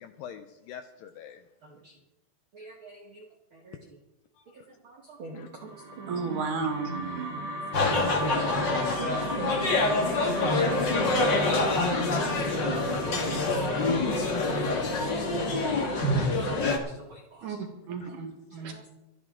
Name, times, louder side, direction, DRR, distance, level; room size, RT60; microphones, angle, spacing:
voice 1, 0.0-1.4 4.4-4.5 5.3-5.5 7.8-9.1 10.1-12.8 13.4-14.9 15.8-15.9 16.4-16.5 18.0-18.1, left 9 dB, 80° left, 8 dB, 2.1 m, -46 dB
voice 2, 2.5-3.2 3.5-3.8 4.8-6.4 6.9-7.5 9.0-10.8 12.5-13.4 15.9-16.1 16.7-16.8 17.1-17.6 18.7-18.9, right 6 dB, 80° right, 0 dB, 1.1 m, -41 dB
sound 1, 5.5-15.8, right 1 dB, 30° right, 2.4 m, -38 dB
voice 3, 6.1-7.1 17.4-17.6 17.9-18.7, right 4 dB, 60° right, 4 dB, 2.8 m, -33 dB
sound 2, 7.7-16.8, left 2 dB, 45° left, 1.5 m, -26 dB
25.5 x 9.7 x 3.7 m, 0.93 s
omnidirectional pair, 4.7 m